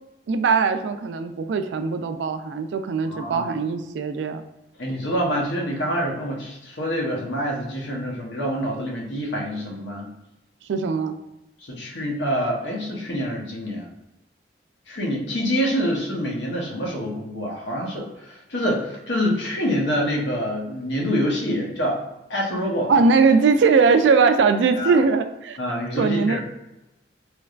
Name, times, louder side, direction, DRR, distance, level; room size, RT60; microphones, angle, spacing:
voice 1, 0.3-4.4 10.7-11.2 22.9-25.6 26.0-26.4, right 5 dB, 80° right, 8 dB, 0.3 m, -20 dB
voice 2, 3.0-3.5 4.8-10.1 11.6-13.9 14.9-22.0 22.3-22.9 24.8-25.0 25.6-26.4, equal, 80° left, -1 dB, 0.9 m, -26 dB
3.3 x 3.0 x 2.4 m, 0.93 s
head